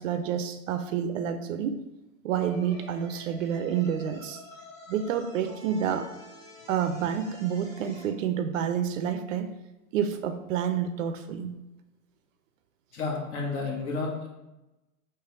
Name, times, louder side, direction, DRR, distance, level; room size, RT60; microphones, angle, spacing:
voice 1, 0.0-1.8 2.2-4.4 4.9-6.1 6.7-9.5 9.9-11.5, right 8 dB, 60° right, 9 dB, 0.5 m, -29 dB
sound 1, 2.4-8.1, left 1 dB, 5° left, 1.1 m, -48 dB
voice 2, 12.9-14.3, left 4 dB, 50° left, -2 dB, 1.4 m, -31 dB
3.3 x 3.2 x 4.4 m, 0.98 s
hypercardioid pair, 135°, 45 cm